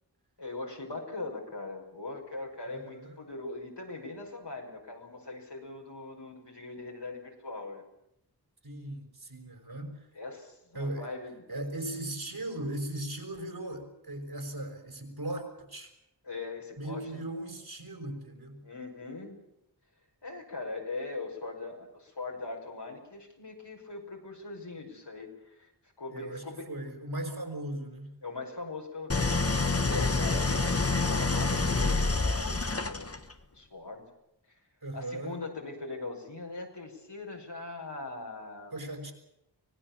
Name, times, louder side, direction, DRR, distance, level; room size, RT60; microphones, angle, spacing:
voice 1, 0.4-7.8 10.2-11.4 16.3-17.2 18.6-19.4 20.2-25.7 26.0-26.7 28.2-33.1 33.5-34.0 34.5-34.6 34.9-38.7, left 3 dB, 75° left, 1 dB, 5.7 m, -41 dB
voice 2, 2.7-3.2 8.6-10.1 10.7-11.1 11.5-15.9 16.8-18.6 26.1-28.1 34.8-35.4 38.7-39.1, right 1 dB, 65° right, 4 dB, 5.6 m, -38 dB
Idling, 29.1-33.3, left 3 dB, 35° left, 1.5 m, -27 dB
25.0 x 18.5 x 7.4 m, 0.82 s
wide cardioid pair, 40°, 41 cm